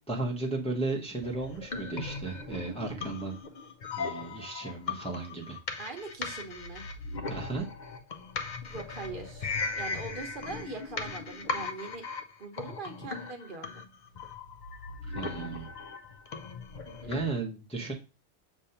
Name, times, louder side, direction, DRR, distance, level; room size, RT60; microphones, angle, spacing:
voice 1, 0.1-3.4 4.0-5.6 7.3-7.7 15.0-15.7 17.1-17.9, right 3 dB, 5° left, -1 dB, 0.8 m, -34 dB
sound 1, 1.2-17.4, left 4 dB, 50° left, 0.7 m, -38 dB
voice 2, 5.8-6.9 8.6-12.0 12.4-13.7 16.8-17.1, right 3 dB, 50° right, 3 dB, 1.1 m, -41 dB
6.6 x 2.6 x 5.6 m, 0.31 s
omnidirectional pair, 1.1 m